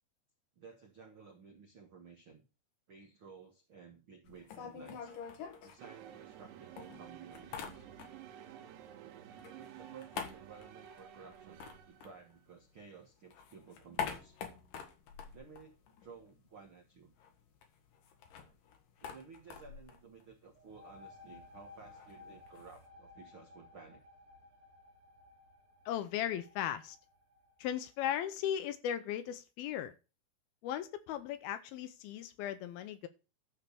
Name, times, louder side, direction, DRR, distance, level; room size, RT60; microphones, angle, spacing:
voice 1, 0.6-2.4 2.9-5.1 5.6-8.0 9.6-14.3 15.3-17.1 19.0-24.0, right 5 dB, 75° right, 2 dB, 1.2 m, -55 dB
sound 1, 4.3-6.4 6.8-8.4 8.7-12.8 13.1-16.4 16.7-16.8 17.1-22.9, left 7 dB, 60° left, 2.8 m, -46 dB
sound 2, 5.8-12.4, right 10 dB, 90° right, 3.2 m, -52 dB
sound 3, 20.5-28.0, left 3 dB, 55° right, 2.6 m, -57 dB
voice 2, 25.9-27.0 27.6-29.9 30.6-33.1, left 10 dB, 75° left, 11 dB, 2.4 m, -37 dB
12.5 x 4.5 x 6.9 m, 0.31 s
omnidirectional pair, 4.7 m